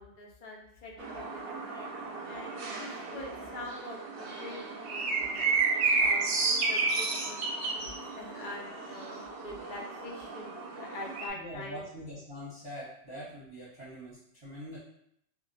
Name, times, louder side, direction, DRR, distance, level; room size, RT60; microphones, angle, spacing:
voice 1, 0.0-5.5 6.0-11.9, left 2 dB, 55° left, 0 dB, 0.6 m, -45 dB
sound 1, 1.0-11.3, right 4 dB, 60° right, 0.7 m, -32 dB
sound 2, 6.6-10.6 10.9-11.0, left 1 dB, 10° left, 0.6 m, -51 dB
voice 2, 11.3-14.8, equal, 30° right, -8 dB, 0.8 m, -43 dB
2.3 x 2.2 x 3.8 m, 0.74 s
omnidirectional pair, 1.2 m